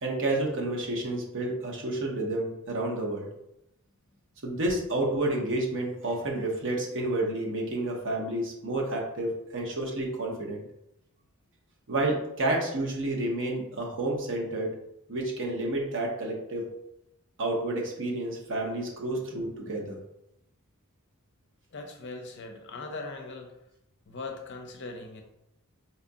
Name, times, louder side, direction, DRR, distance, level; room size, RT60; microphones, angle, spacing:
voice 1, 0.0-3.3 4.4-10.6 11.9-14.7 15.1-16.7 17.4-20.0, right 2 dB, 60° right, -1 dB, 0.8 m, -30 dB
voice 2, 21.7-23.5 24.1-25.2, left 3 dB, 55° left, 4 dB, 0.5 m, -40 dB
4.2 x 2.4 x 2.6 m, 0.83 s
head